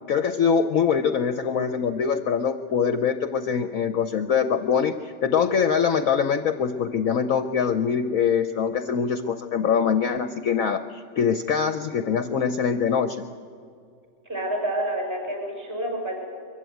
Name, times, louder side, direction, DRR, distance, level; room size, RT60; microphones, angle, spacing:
voice 1, 0.1-13.2, left 6 dB, 60° left, 9 dB, 1.0 m, -23 dB
voice 2, 14.3-16.3, right 1 dB, 30° right, 1 dB, 6.5 m, -28 dB
23.0 x 15.0 x 9.2 m, 2.3 s
omnidirectional pair, 1.9 m